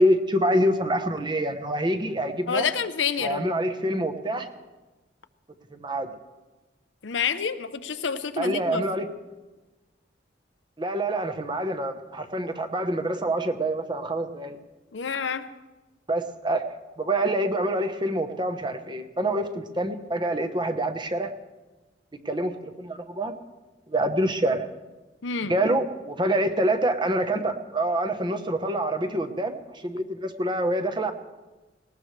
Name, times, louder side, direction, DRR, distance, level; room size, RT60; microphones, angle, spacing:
voice 1, 0.0-2.7 3.2-4.5 5.7-6.1 8.4-9.1 10.8-14.6 16.1-16.6 17.0-21.3 22.2-23.3 23.9-24.7 25.5-31.1, right 1 dB, 25° right, 6 dB, 1.0 m, -26 dB
voice 2, 2.5-3.5 7.0-8.8 14.9-15.5 25.2-25.5, left 6 dB, 80° left, 10 dB, 0.8 m, -28 dB
19.0 x 18.5 x 3.3 m, 1.2 s
head